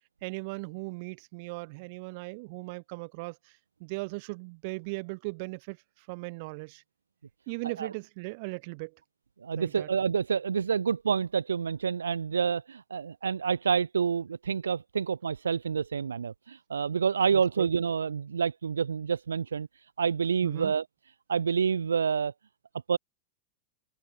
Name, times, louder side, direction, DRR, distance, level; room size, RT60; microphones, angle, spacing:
voice 1, 0.2-6.8 7.5-9.0 9.5-9.9 17.3-17.7 20.4-20.7, right 28 dB, 45° right, 7.1 m, -38 dB
voice 2, 9.4-19.7 20.0-20.8 21.3-22.3 22.9-23.0, right 6 dB, 70° right, 2.1 m, -28 dB
figure-of-eight pair, 90°, 0 cm